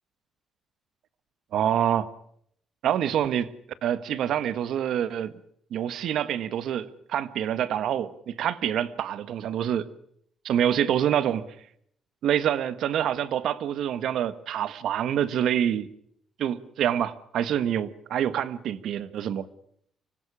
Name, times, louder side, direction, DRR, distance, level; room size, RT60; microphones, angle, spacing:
voice 1, 1.5-2.1 2.8-3.5 3.8-5.3 5.7-9.9 10.4-11.5 12.2-15.9 16.4-19.5, right 10 dB, 75° right, 15 dB, 1.4 m, -26 dB
25.5 x 17.0 x 10.0 m, 0.70 s
cardioid pair, 90°, 0 cm